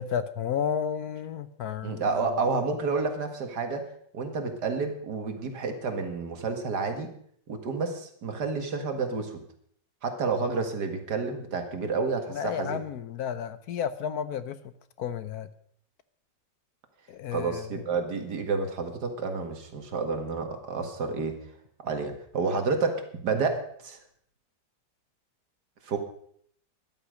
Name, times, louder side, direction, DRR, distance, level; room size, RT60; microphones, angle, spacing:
voice 1, 0.0-2.3 12.3-14.6 15.0-15.5 17.1-17.9, left 8 dB, 65° left, 13 dB, 1.2 m, -32 dB
voice 2, 1.8-3.9 4.1-7.1 7.5-9.4 10.0-12.8 17.3-21.4 21.8-24.0 25.9-26.0, right 4 dB, 65° right, 6 dB, 2.4 m, -30 dB
13.0 x 11.5 x 6.4 m, 0.65 s
omnidirectional pair, 1.9 m